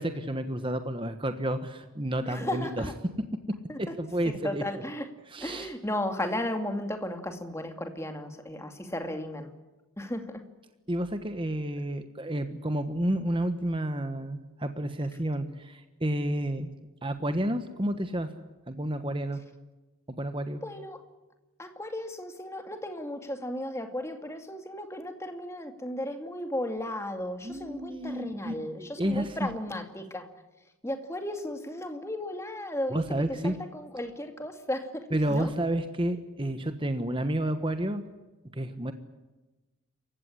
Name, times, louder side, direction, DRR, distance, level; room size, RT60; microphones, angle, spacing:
voice 1, 0.0-2.9 4.0-4.6 5.3-5.7 10.9-16.7 17.0-18.3 18.7-19.4 20.2-20.6 27.4-29.5 32.9-33.5 35.1-38.0 38.5-38.9, right 1 dB, 25° right, 8 dB, 1.3 m, -30 dB
voice 2, 2.2-3.0 3.7-3.9 4.3-5.1 5.4-9.5 10.0-10.4 20.6-21.0 21.6-30.3 30.8-33.0 33.3-35.5, left 1 dB, 15° left, 6 dB, 2.4 m, -35 dB
27.5 x 16.0 x 9.9 m, 1.1 s
head